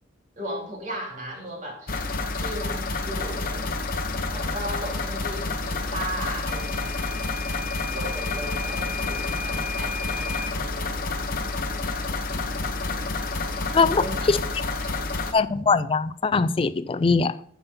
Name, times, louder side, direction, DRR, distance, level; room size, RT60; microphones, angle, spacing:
voice 1, 0.4-2.1 2.3-3.6 4.3-7.0 7.9-11.4 13.7-14.4, right 1 dB, 40° right, 2.7 m, -36 dB
sound 1, 1.9-15.3, left 3 dB, 45° left, 1.0 m, -29 dB
Microwave oven / Alarm, 6.5-10.6, left 4 dB, 60° right, 1.2 m, -36 dB
voice 2, 13.7-14.4 15.3-17.4, left 4 dB, 30° left, 0.4 m, -22 dB
9.1 x 5.6 x 5.7 m
head